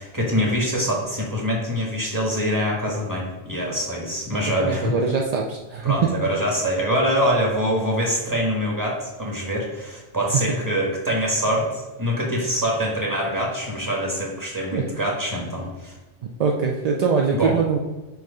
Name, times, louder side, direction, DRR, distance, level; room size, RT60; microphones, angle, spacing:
voice 1, 0.0-4.9 5.8-16.0 17.3-17.5, equal, 15° right, -2 dB, 1.4 m, -24 dB
voice 2, 4.6-5.9 14.7-14.9 16.4-17.8, right 5 dB, 55° right, 0 dB, 0.4 m, -22 dB
4.7 x 4.6 x 4.9 m, 1.2 s
omnidirectional pair, 1.2 m